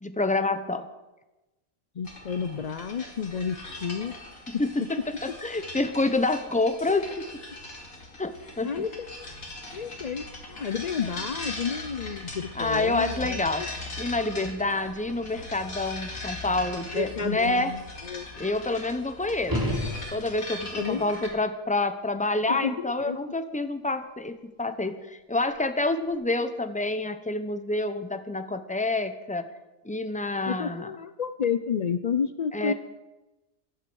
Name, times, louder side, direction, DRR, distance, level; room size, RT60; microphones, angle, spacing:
voice 1, 0.0-0.9 4.6-7.3 8.2-8.7 12.5-13.7 14.0-17.7 18.4-19.8 20.1-29.4 29.8-30.9 32.5-32.7, left 2 dB, 5° left, 9 dB, 0.7 m, -28 dB
voice 2, 2.0-4.1 4.5-4.9 8.6-9.3 9.7-13.7 16.9-18.3 20.8-21.1 22.5-23.3 30.4-32.7, left 6 dB, 90° left, 11 dB, 0.3 m, -31 dB
sound 1, 2.0-21.3, left 2 dB, 75° left, 3.1 m, -40 dB
sound 2, 19.4-20.6 25.5-25.6, left 1 dB, 15° right, 4.5 m, -30 dB
15.0 x 12.0 x 6.3 m, 1.1 s
omnidirectional pair, 1.5 m